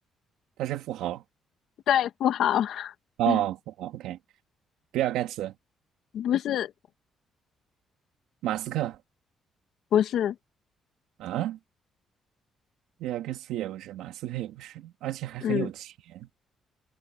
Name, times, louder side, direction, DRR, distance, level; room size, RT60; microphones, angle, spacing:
voice 1, 0.6-1.2 3.2-4.2 4.9-5.5 8.4-9.0 11.2-11.6 13.0-16.3, right 13 dB, 90° right, 2.6 m, -31 dB
voice 2, 1.9-2.9 3.3-3.4 6.1-6.7 9.9-10.3 15.4-15.7, left 10 dB, 75° left, 1.5 m, -25 dB
cardioid pair, 90°, 0 cm